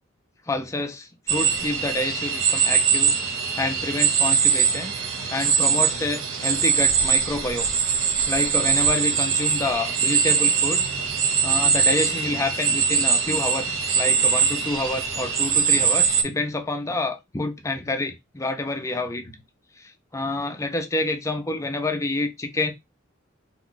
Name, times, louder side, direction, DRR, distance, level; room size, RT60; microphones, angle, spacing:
voice 1, 0.5-3.2 3.6-4.9 5.3-7.7 8.3-10.9 11.4-19.4 19.8-22.7, left 2 dB, 15° left, 0.4 m, -28 dB
sound 1, 1.3-16.2, right 6 dB, 70° right, 0.7 m, -22 dB
2.5 x 2.2 x 3.7 m
head